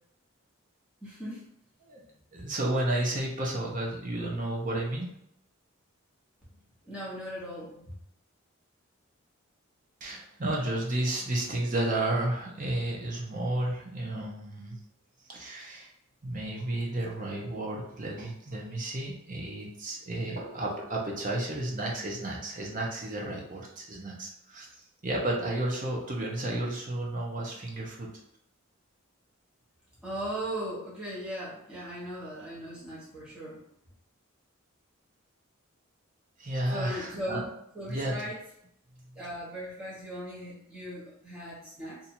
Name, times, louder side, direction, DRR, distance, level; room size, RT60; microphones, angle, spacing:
voice 1, 1.0-1.4 6.9-7.9 30.0-33.6 36.7-37.4 37.7-38.4 39.1-42.0, equal, 5° right, -8 dB, 1.1 m, -38 dB
voice 2, 2.3-5.1 10.0-14.8 15.3-15.9 16.2-24.7 25.0-28.1 36.4-37.4 37.9-38.2, right 1 dB, 40° right, -2 dB, 0.8 m, -32 dB
2.7 x 2.6 x 4.3 m, 0.74 s
head